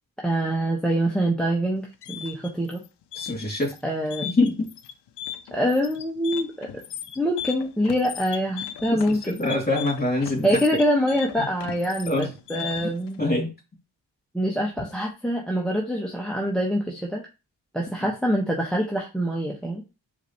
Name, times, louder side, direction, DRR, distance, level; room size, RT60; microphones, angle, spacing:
voice 1, 0.2-2.8 3.8-4.3 5.5-6.7 7.2-9.4 10.4-13.2 14.3-17.2 17.7-19.8, equal, ahead, -1 dB, 1.1 m, -25 dB
sound 1, 1.8-13.1, left 10 dB, 65° left, 0.6 m, -37 dB
voice 2, 3.1-3.7 4.2-4.7 8.9-10.6 11.4-11.5 12.1-12.3 12.8-12.9 13.2-13.5, left 2 dB, 20° left, -1 dB, 2.7 m, -25 dB
4.9 x 3.3 x 2.9 m, 0.28 s
supercardioid pair, 40°, 43 cm